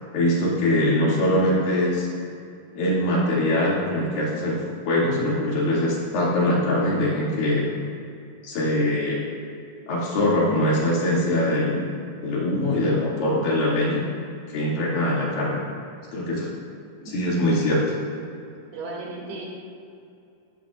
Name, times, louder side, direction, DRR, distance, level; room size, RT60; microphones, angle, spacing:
voice 1, 0.1-2.1 2.8-4.6 4.9-7.7 8.4-9.2 9.9-11.9 12.2-14.0 14.5-15.6 16.1-16.5 17.1-17.8, left 1 dB, 70° left, -6 dB, 4.2 m, -22 dB
voice 2, 18.7-19.5, right 3 dB, 90° right, -3 dB, 4.3 m, -35 dB
15.0 x 13.5 x 2.5 m, 2.5 s
omnidirectional pair, 4.3 m